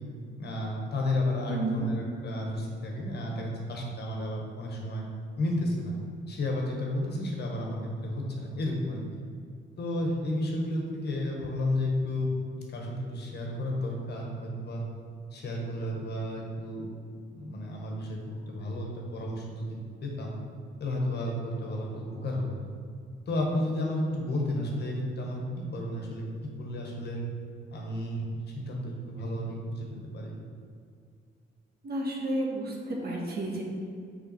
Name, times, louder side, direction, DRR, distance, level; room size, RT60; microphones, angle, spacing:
voice 1, 0.4-5.0 5.4-6.0 6.3-9.0 9.8-14.8 15.3-16.9 17.3-20.4 20.8-22.6 23.3-26.2 26.6-27.2 27.7-28.2 28.5-29.9 30.1-30.3, left 1 dB, 55° left, -1 dB, 1.4 m, -32 dB
voice 2, 1.5-1.9 31.8-33.6, right 1 dB, 50° right, -1 dB, 1.4 m, -31 dB
5.8 x 5.0 x 4.4 m, 2.3 s
cardioid pair, 90°, 20 cm